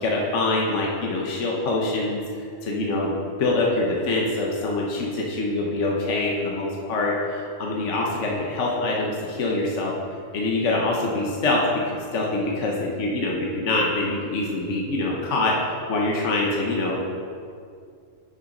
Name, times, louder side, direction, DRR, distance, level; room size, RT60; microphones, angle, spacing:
voice 1, 0.0-2.2 2.6-3.1 3.4-9.9 10.3-11.6 12.1-15.5 15.9-17.0, left 2 dB, 60° left, -2 dB, 1.3 m, -24 dB
6.7 x 5.7 x 5.3 m, 2.3 s
omnidirectional pair, 1.4 m